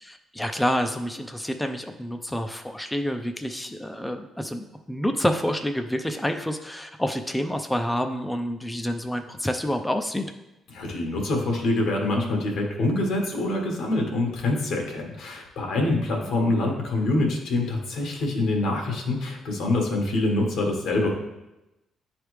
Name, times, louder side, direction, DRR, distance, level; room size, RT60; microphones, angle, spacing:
voice 1, 0.0-10.3 16.0-16.3, equal, 5° left, 6 dB, 0.4 m, -28 dB
voice 2, 10.7-21.1, left 2 dB, 80° left, 1 dB, 1.3 m, -25 dB
9.6 x 3.3 x 3.1 m, 0.96 s
cardioid pair, 90°, 0 cm